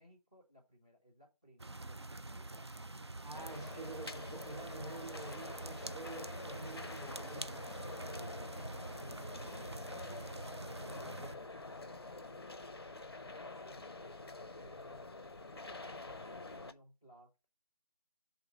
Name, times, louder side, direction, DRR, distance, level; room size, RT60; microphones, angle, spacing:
voice 1, 0.0-3.2 9.7-12.4 13.3-15.0 15.4-17.3, equal, 10° right, 0.8 m, -63 dB
sound 1, 1.6-11.4, right 2 dB, 45° right, 0.4 m, -46 dB
voice 2, 3.2-8.2, right 3 dB, 90° right, 1.1 m, -49 dB
sound 2, 3.3-16.7, left 3 dB, 40° left, 0.6 m, -47 dB
5.8 x 3.9 x 5.2 m
figure-of-eight pair, 165°, 20 cm